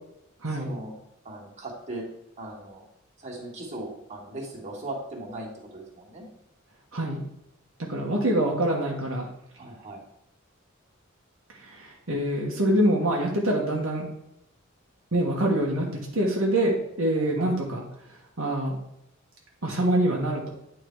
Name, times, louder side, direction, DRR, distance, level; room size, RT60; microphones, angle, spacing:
voice 1, 0.5-0.9 1.2-2.0 2.4-2.8 3.2-5.5 5.7-6.3 9.6-10.0 17.2-17.5, right 2 dB, 35° right, -3 dB, 2.0 m, -38 dB
voice 2, 6.9-7.2 7.9-9.3 11.8-14.1 15.1-15.9 16.1-17.8 18.4-18.8 19.6-20.5, right 1 dB, 70° right, -2 dB, 1.3 m, -25 dB
9.2 x 3.9 x 4.7 m, 0.82 s
head